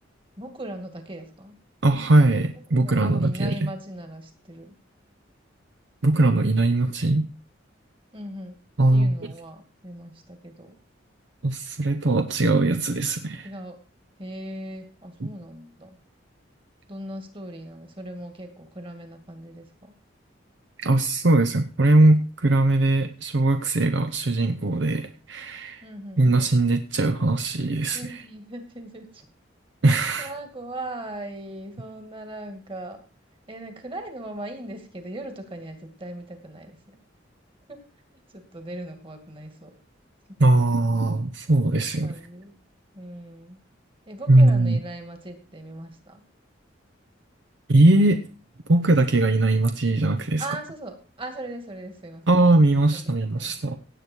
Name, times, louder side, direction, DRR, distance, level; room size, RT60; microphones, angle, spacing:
voice 1, 0.4-1.6 2.7-4.8 8.1-8.6 8.9-10.7 13.4-13.8 14.2-16.0 16.9-19.9 25.8-26.2 27.9-29.2 30.2-33.0 33.5-37.0 37.7-37.8 38.3-39.8 40.3-40.4 41.5-41.6 42.0-42.6 42.9-43.6 44.1-46.2 50.4-52.4 52.9-53.1 53.4-53.5, right 1 dB, 30° right, 6 dB, 2.4 m, -39 dB
voice 2, 1.8-3.7 6.0-7.3 8.8-9.1 11.4-13.5 15.2-15.3 20.8-25.8 26.2-28.0 29.8-30.3 40.4-42.1 44.3-44.8 47.7-48.2 48.7-50.5 52.3-53.8, right 2 dB, 65° right, 7 dB, 0.8 m, -20 dB
17.0 x 8.3 x 4.6 m, 0.36 s
head